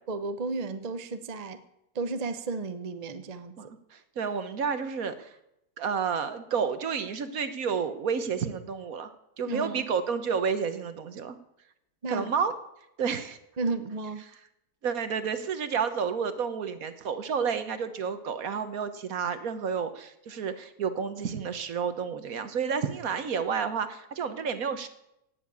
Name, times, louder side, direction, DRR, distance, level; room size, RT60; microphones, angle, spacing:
voice 1, 0.1-1.6 1.9-3.7 9.4-9.8 12.0-12.3 13.6-14.3, right 3 dB, 35° right, 10 dB, 0.7 m, -33 dB
voice 2, 3.6-5.3 5.8-11.4 12.1-12.5 13.0-13.4 14.3-14.4 14.8-24.9, right 6 dB, 60° right, 11 dB, 1.5 m, -30 dB
17.5 x 7.3 x 8.5 m, 0.83 s
omnidirectional pair, 1.7 m